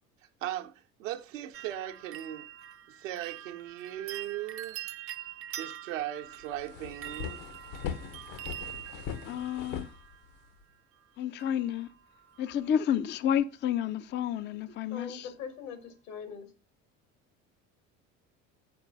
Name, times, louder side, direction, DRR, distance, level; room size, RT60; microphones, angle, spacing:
voice 1, 0.4-2.5 2.9-4.8 5.5-7.4, right 13 dB, 70° right, 0.9 m, -38 dB
sound 1, 1.5-10.5 11.4-11.9 12.2-12.7 13.1-13.2, right 12 dB, 35° right, 0.6 m, -44 dB
sound 2, 6.0-6.1 6.4-10.6, left 8 dB, 60° left, 1.0 m, -40 dB
voice 2, 9.3-9.9 11.2-11.9 12.4-15.3, left 9 dB, 30° left, 0.5 m, -30 dB
voice 3, 14.9-16.5, left 6 dB, 80° left, 2.0 m, -41 dB
7.6 x 4.4 x 5.3 m
hypercardioid pair, 65°, 39 cm